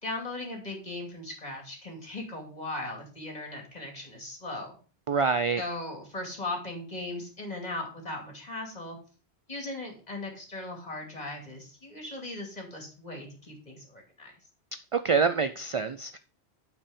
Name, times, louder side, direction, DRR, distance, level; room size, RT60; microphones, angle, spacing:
voice 1, 0.0-4.8 5.6-9.0 9.5-14.3, left 2 dB, 40° left, 1 dB, 2.6 m, -38 dB
voice 2, 5.1-5.6 14.9-16.2, right 5 dB, 55° right, 10 dB, 0.3 m, -26 dB
8.8 x 4.7 x 5.1 m, 0.38 s
omnidirectional pair, 1.1 m